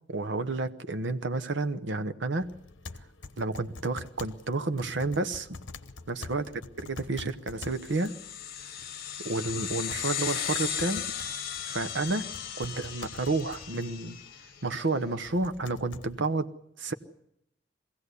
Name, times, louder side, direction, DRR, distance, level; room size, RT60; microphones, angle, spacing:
voice 1, 0.1-2.5 3.4-5.5 6.1-6.4 6.8-8.1 9.2-11.1 11.6-12.2 12.6-14.2 14.6-16.5 16.8-16.9, right 3 dB, 65° right, 9 dB, 1.0 m, -30 dB
sound 1, 2.4-16.3, left 3 dB, 65° left, 1.0 m, -48 dB
sound 2, 7.7-14.6, left 9 dB, 50° left, 1.4 m, -36 dB
22.5 x 16.0 x 8.3 m, 0.80 s
head